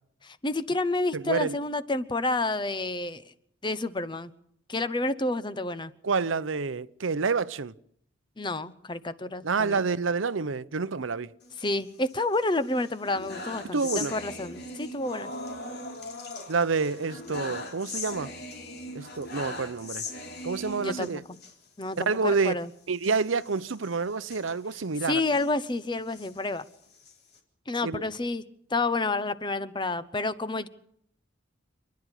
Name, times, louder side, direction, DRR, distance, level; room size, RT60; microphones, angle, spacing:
voice 1, 0.2-3.2 3.6-4.3 4.7-5.9 8.4-9.8 11.6-15.3 20.8-21.2 21.8-22.7 25.0-26.6 27.7-28.4 28.7-30.7, left 2 dB, 25° left, 0.9 m, -29 dB
voice 2, 1.1-1.6 6.0-7.7 9.4-11.3 13.7-14.1 16.5-18.3 18.9-20.0 20.4-21.2 22.1-22.6 22.9-25.2 27.8-28.0, right 4 dB, 85° right, 0.7 m, -28 dB
sound 1, 11.4-12.4 12.7-21.5 21.9-22.0 22.3-22.4 23.0-25.5 26.0-27.4, left 2 dB, 55° left, 3.9 m, -40 dB
28.0 x 10.5 x 9.9 m
head